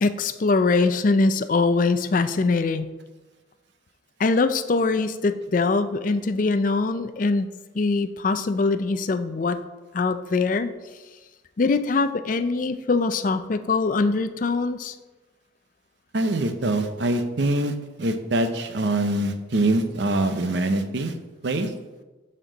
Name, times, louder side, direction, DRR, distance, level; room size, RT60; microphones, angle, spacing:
voice 1, 0.0-2.9 4.2-7.5 7.8-9.6 9.9-10.7 11.6-14.9, left 3 dB, 45° left, 10 dB, 0.4 m, -22 dB
voice 2, 16.1-21.1 21.4-21.7, right 1 dB, 65° right, 9 dB, 0.7 m, -24 dB
12.5 x 4.4 x 3.9 m, 1.2 s
head